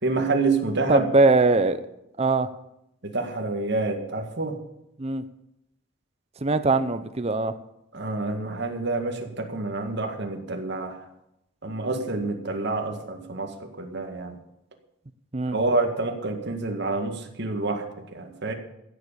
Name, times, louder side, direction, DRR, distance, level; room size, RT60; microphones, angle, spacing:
voice 1, 0.0-1.1 3.0-4.6 7.9-11.1 11.6-14.4 15.5-18.5, right 3 dB, 55° right, 4 dB, 2.0 m, -28 dB
voice 2, 0.9-1.8 2.2-2.5 5.0-5.2 6.4-7.5 15.3-15.6, right 3 dB, 30° right, 10 dB, 0.6 m, -21 dB
16.0 x 7.5 x 6.8 m, 0.83 s
head